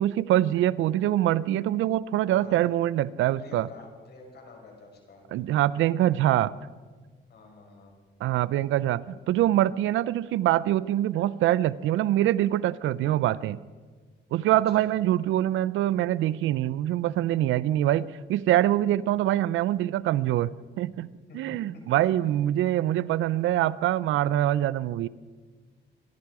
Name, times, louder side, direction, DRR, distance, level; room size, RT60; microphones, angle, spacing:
voice 1, 0.0-3.7 5.3-6.5 8.2-13.6 14.3-21.1 21.3-25.1, right 13 dB, 80° right, 18 dB, 0.5 m, -24 dB
voice 2, 2.3-2.6 3.4-5.6 7.3-7.9 14.7-15.0 21.3-22.0, left 3 dB, 55° left, 1 dB, 5.6 m, -49 dB
25.5 x 11.5 x 4.8 m, 1.4 s
cardioid pair, 90°, 20 cm